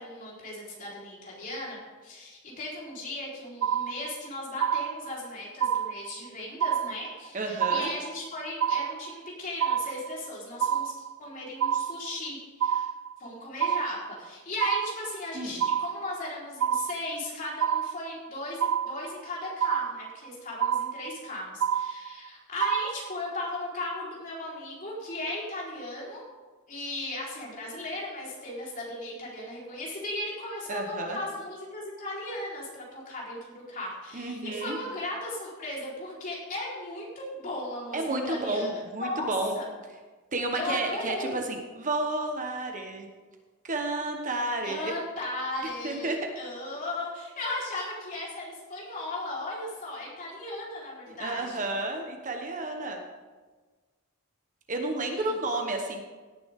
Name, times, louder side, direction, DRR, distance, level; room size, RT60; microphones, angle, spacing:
voice 1, 0.0-12.9 13.2-26.2 26.7-38.7 39.0-39.3 39.5-39.7 40.5-41.4 44.6-51.7 55.1-55.3, left 2 dB, 40° left, -5 dB, 4.4 m, -37 dB
sound 1, 3.6-4.3 4.6-5.3 5.6-6.3 6.6-7.3 7.6-8.3 8.6-9.3 9.6-10.3 10.6-11.3 11.6-12.3 12.6-13.3 13.6-14.3 14.6-15.3 15.6-16.3 16.6-17.3 17.6-18.3 18.6-19.3 19.6-20.3 20.6-21.3 21.6-22.3 22.6-23.3, right 8 dB, 60° right, 0.3 m, -28 dB
voice 2, 7.3-7.9 15.3-15.6 30.7-31.2 34.1-34.8 37.9-39.5 40.3-43.1 43.6-44.9 45.8-46.3 51.1-53.0 54.7-56.0, right 2 dB, 35° right, 3 dB, 1.3 m, -31 dB
17.5 x 10.0 x 3.7 m, 1.3 s
head